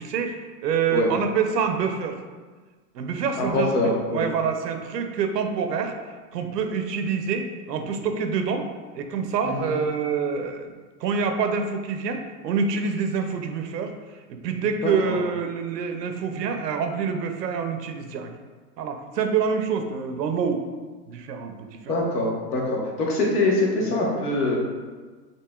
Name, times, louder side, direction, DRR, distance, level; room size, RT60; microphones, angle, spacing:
voice 1, 0.0-2.2 2.9-3.7 4.1-6.0 6.3-8.7 8.9-10.7 11.0-13.9 14.3-18.3 18.8-20.6 21.1-21.9, right 6 dB, 85° right, 6 dB, 0.7 m, -26 dB
voice 2, 3.4-4.2 9.4-9.8 14.8-15.2 21.9-24.6, left 2 dB, 65° left, -3 dB, 1.4 m, -24 dB
5.8 x 2.8 x 2.3 m, 1.4 s
hypercardioid pair, 160°, 48 cm